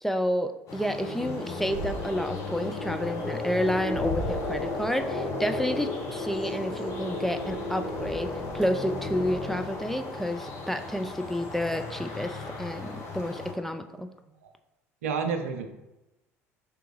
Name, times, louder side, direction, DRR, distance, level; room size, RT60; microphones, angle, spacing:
voice 1, 0.0-14.1, equal, 5° left, 7 dB, 0.3 m, -30 dB
sound 1, 0.7-13.5, left 2 dB, 45° left, 1.1 m, -34 dB
voice 2, 15.0-15.7, right 5 dB, 75° right, 6 dB, 0.5 m, -30 dB
4.9 x 3.4 x 3.1 m, 1.0 s
figure-of-eight pair, 60°, 8 cm